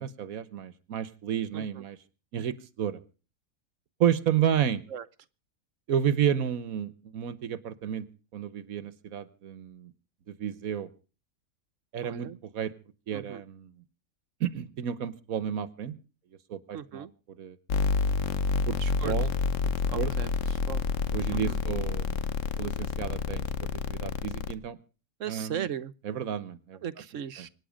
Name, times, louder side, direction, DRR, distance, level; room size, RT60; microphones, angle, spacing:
voice 1, 0.0-2.0 2.3-3.0 4.0-4.8 5.9-8.1 8.3-9.9 10.3-10.9 11.9-12.7 13.1-13.7 14.4-15.9 16.5-17.1 17.4-17.6 18.7-18.8 19.0-19.3 19.9-20.1 21.1-22.2 22.6-24.8 25.3-25.7 26.0-26.8 27.4-27.5, right 9 dB, 85° right, 1.5 m, -31 dB
voice 2, 1.5-1.8 4.9-5.0 12.0-12.4 13.1-13.4 16.7-17.1 18.8-19.1 19.9-20.8 21.3-21.6 25.2-25.9 26.8-27.5, right 9 dB, 65° right, 1.3 m, -38 dB
sound 1, 17.7-24.5, left 5 dB, 65° left, 1.3 m, -29 dB
25.0 x 10.0 x 5.1 m
omnidirectional pair, 1.4 m